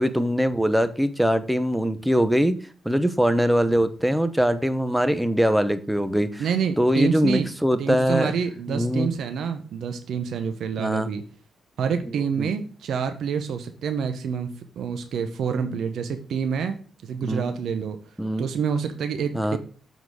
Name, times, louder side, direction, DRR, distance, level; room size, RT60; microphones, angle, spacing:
voice 1, 0.0-2.6 2.8-6.5 6.8-8.3 8.7-9.1 10.8-11.1 12.4-12.5 17.2-17.5 18.2-18.5 19.3-19.6, equal, 5° right, 12 dB, 0.8 m, -22 dB
voice 2, 6.4-7.5 7.8-11.2 11.8-18.0 18.4-19.6, right 6 dB, 75° right, 8 dB, 0.7 m, -27 dB
7.2 x 4.0 x 4.7 m, 0.42 s
cardioid pair, 65°, 0 cm